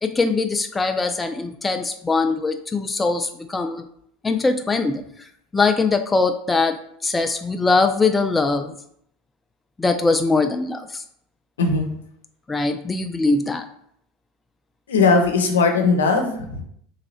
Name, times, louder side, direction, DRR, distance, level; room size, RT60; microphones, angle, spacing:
voice 1, 0.0-3.9 4.2-5.0 5.5-8.7 9.8-11.0 12.5-13.7, left 3 dB, 15° left, 6 dB, 0.3 m, -21 dB
voice 2, 14.9-16.6, left 4 dB, 85° left, 4 dB, 0.7 m, -18 dB
3.2 x 2.9 x 4.1 m, 0.69 s
hypercardioid pair, 85°, 0 cm